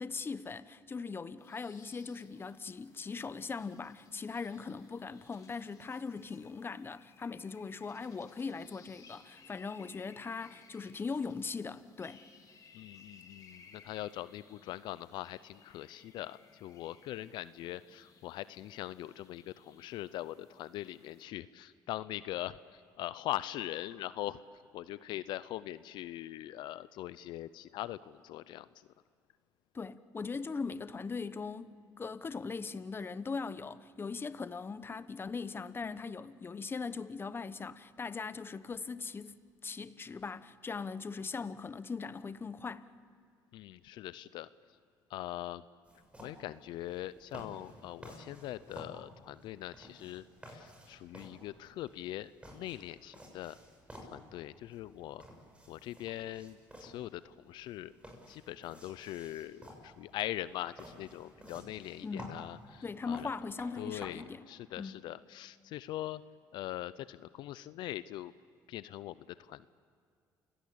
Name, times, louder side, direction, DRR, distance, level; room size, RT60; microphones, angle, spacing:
voice 1, 0.0-12.3 29.7-42.9 62.0-62.4 62.8-64.4 64.8-64.9, left 4 dB, 30° left, 0.9 m, -40 dB
sound 1, 1.4-21.2, left 5 dB, 45° left, 3.8 m, -61 dB
voice 2, 12.7-28.9 43.5-44.5 45.1-45.6 46.2-53.6 54.0-55.2 55.7-57.9 58.3-63.3 63.8-66.2 66.5-68.3 68.7-69.7, left 14 dB, 75° left, 0.5 m, -42 dB
sound 2, 45.8-64.1, equal, 15° right, 6.9 m, -53 dB
28.5 x 17.5 x 8.6 m
supercardioid pair, 85°, 8 cm